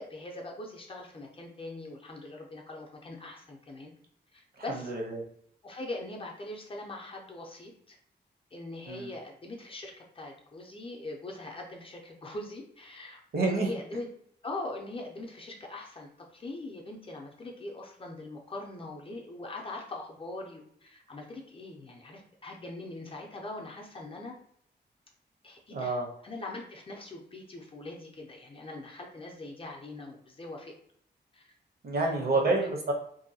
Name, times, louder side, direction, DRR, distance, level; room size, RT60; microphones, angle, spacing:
voice 1, 0.0-3.9 4.3-4.9 5.6-8.0 8.5-14.1 14.4-24.3 25.4-30.7 31.3-31.5 32.0-32.7, left 2 dB, 30° left, 0 dB, 0.5 m, -42 dB
voice 2, 4.7-5.2 8.9-9.1 13.3-13.7 25.7-26.1 31.8-32.9, right 3 dB, 55° right, 1 dB, 0.7 m, -28 dB
2.6 x 2.2 x 2.7 m, 0.67 s
wide cardioid pair, 135°, 19 cm